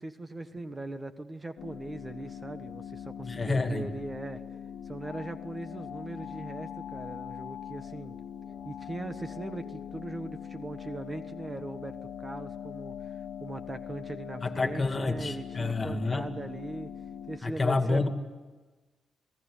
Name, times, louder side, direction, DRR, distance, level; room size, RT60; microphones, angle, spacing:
voice 1, 0.0-4.4 4.8-8.2 8.6-16.9 17.3-18.1, right 2 dB, 20° right, 9 dB, 1.4 m, -40 dB
sound 1, 1.6-17.4, left 8 dB, 80° left, 1.3 m, -42 dB
voice 2, 3.2-3.9 14.4-16.3 17.4-18.1, left 3 dB, 35° left, 7 dB, 2.4 m, -29 dB
27.0 x 18.0 x 9.9 m, 1.3 s
cardioid pair, 75°, 0 cm